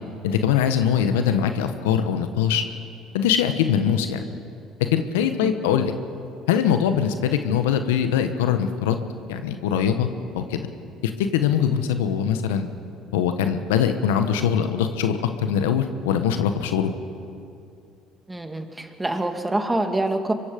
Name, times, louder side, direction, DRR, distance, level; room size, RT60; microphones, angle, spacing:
voice 1, 0.2-2.6 3.1-4.2 4.9-5.9 6.5-9.0 9.3-10.1 10.3-10.6 11.0-12.7 13.1-16.9, left 8 dB, 85° left, 8 dB, 1.2 m, -22 dB
voice 2, 18.3-20.3, right 2 dB, 15° right, 5 dB, 2.4 m, -26 dB
25.5 x 23.5 x 5.3 m, 2.6 s
hypercardioid pair, 65°, 0 cm